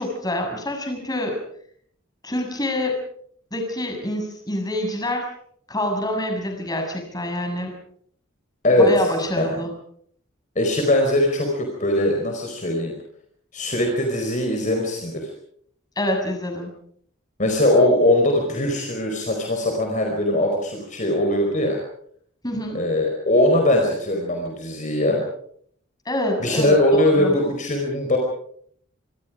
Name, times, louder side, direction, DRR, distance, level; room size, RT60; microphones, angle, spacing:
voice 1, 0.0-1.4 2.2-3.0 3.5-5.3 5.7-7.7 8.8-9.7 15.9-16.7 22.4-22.8 26.0-27.4, left 1 dB, 20° left, 3 dB, 6.8 m, -26 dB
voice 2, 10.5-12.9 13.5-15.3 17.4-21.8 22.7-25.2 26.4-28.2, left 1 dB, 40° left, 2 dB, 4.8 m, -20 dB
26.5 x 25.0 x 5.1 m, 0.63 s
head